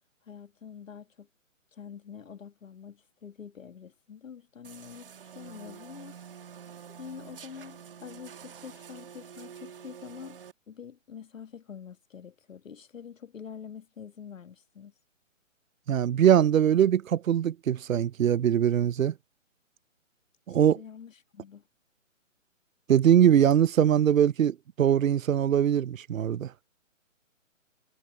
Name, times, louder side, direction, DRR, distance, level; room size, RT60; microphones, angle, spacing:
voice 1, 0.2-1.3 1.7-6.2 6.9-10.4 10.7-14.9 20.5-21.6, left 7 dB, 75° left, 1.7 m, -46 dB
sound 1, 4.6-10.5, right 8 dB, 45° right, 1.6 m, -47 dB
voice 2, 15.9-19.1 20.5-20.8 22.9-26.5, right 9 dB, 85° right, 0.6 m, -22 dB
hypercardioid pair, 165°, 39 cm